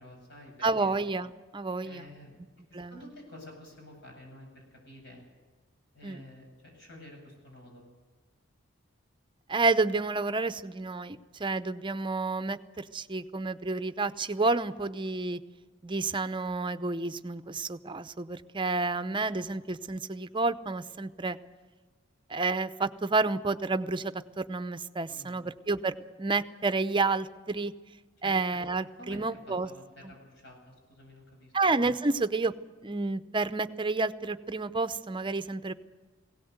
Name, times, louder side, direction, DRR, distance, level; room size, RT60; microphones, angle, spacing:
voice 1, 0.0-0.9 1.8-2.4 2.7-5.2 5.9-7.8 25.1-25.5 28.2-28.6 29.0-31.5, left 1 dB, 65° left, 1 dB, 8.0 m, -50 dB
voice 2, 0.6-2.1 2.7-3.0 6.0-6.2 9.5-15.4 15.8-21.4 22.3-27.7 28.2-29.7 30.0-30.1 31.5-32.5 32.8-35.7, right 3 dB, 25° right, 11 dB, 0.7 m, -30 dB
20.0 x 17.5 x 8.0 m, 1.3 s
head